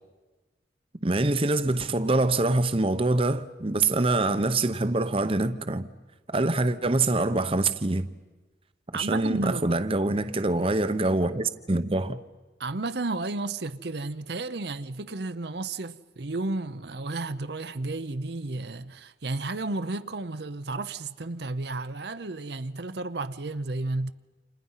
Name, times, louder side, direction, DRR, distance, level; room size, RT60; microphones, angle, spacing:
voice 1, 1.0-5.9 6.3-8.1 8.9-12.2, right 2 dB, 30° right, 0.8 m, -25 dB
voice 2, 8.9-9.8 12.6-24.1, right 2 dB, 65° right, 0.8 m, -32 dB
29.5 x 27.5 x 5.7 m
head